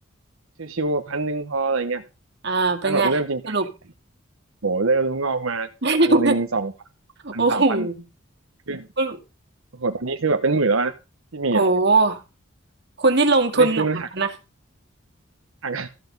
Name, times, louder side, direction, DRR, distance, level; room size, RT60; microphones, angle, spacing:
voice 1, 0.6-2.0 2.8-3.6 4.6-5.7 6.0-6.7 7.3-7.9 8.7-8.9 9.8-10.9 11.3-11.6 13.6-14.1 15.6-15.9, right 3 dB, 85° right, 6 dB, 1.0 m, -24 dB
voice 2, 2.4-3.2 3.5-3.6 5.8-6.4 7.2-7.9 9.0-9.2 11.5-12.2 13.0-13.8 14.1-14.3, right 3 dB, 55° right, 3 dB, 2.3 m, -19 dB
14.0 x 8.1 x 5.4 m, 0.29 s
head